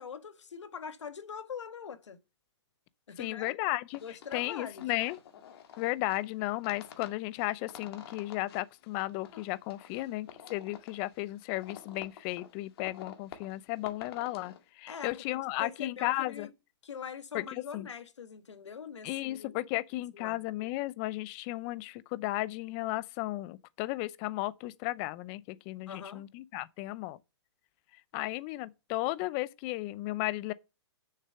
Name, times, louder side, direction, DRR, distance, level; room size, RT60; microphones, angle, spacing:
voice 1, 0.0-2.2 3.1-3.5 4.0-4.9 14.9-16.5 16.8-19.7 20.1-20.4 25.9-26.2, left 7 dB, 80° left, 1.5 m, -43 dB
voice 2, 3.2-4.0 4.3-5.2 5.8-16.5 17.3-17.9 19.0-27.2 28.1-30.5, left 18 dB, 30° left, 0.5 m, -34 dB
sound 1, 3.9-14.6, left 8 dB, 55° left, 1.9 m, -51 dB
6.7 x 6.6 x 6.8 m
hypercardioid pair, 140°, 15 cm